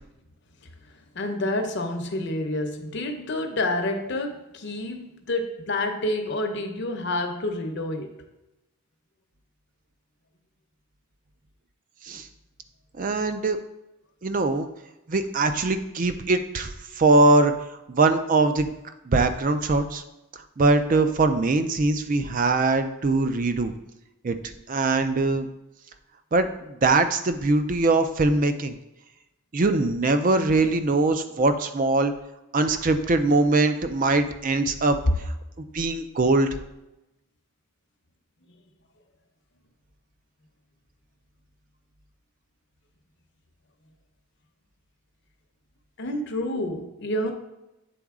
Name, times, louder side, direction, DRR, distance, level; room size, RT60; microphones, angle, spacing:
voice 1, 1.1-8.2 46.0-47.3, left 1 dB, 50° left, 5 dB, 0.7 m, -28 dB
voice 2, 13.0-13.6 14.2-14.7 15.1-17.5 17.9-18.7 19.1-20.0 20.6-23.7 24.2-24.4 24.7-25.5 26.3-28.7 29.5-32.1 32.5-35.3 35.7-36.5, right 3 dB, 35° right, 9 dB, 0.4 m, -22 dB
8.5 x 3.9 x 3.6 m, 0.95 s
head